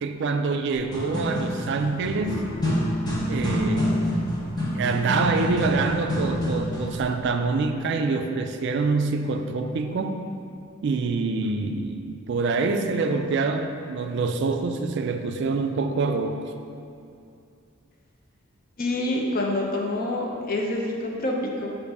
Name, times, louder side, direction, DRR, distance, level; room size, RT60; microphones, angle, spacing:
voice 1, 0.0-2.4 3.3-4.2 4.7-10.2 10.8-16.3, right 4 dB, 55° right, 6 dB, 0.3 m, -26 dB
sound 1, 0.8-7.0, equal, 20° left, 0.9 m, -27 dB
voice 2, 18.8-21.7, left 1 dB, 45° left, 0 dB, 0.7 m, -27 dB
6.9 x 2.6 x 5.4 m, 2.5 s
head